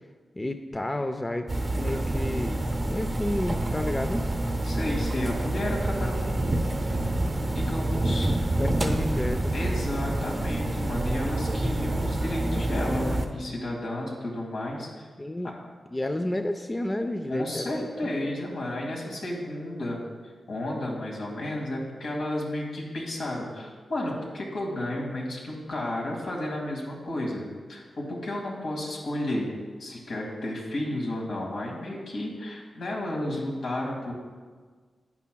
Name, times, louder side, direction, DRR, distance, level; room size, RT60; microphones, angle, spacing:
voice 1, 0.3-2.6 2.9-4.3 8.6-9.5 15.2-15.5 15.9-18.1, left 1 dB, 15° left, 6 dB, 0.4 m, -31 dB
sound 1, 1.5-13.2, right 1 dB, 30° right, 0.7 m, -27 dB
voice 2, 4.6-8.5 8.9-9.0 9.5-15.1 17.3-29.5 29.8-34.1, left 1 dB, 75° left, -2 dB, 2.1 m, -32 dB
11.0 x 9.2 x 2.3 m, 1.5 s
wide cardioid pair, 125°, 0 cm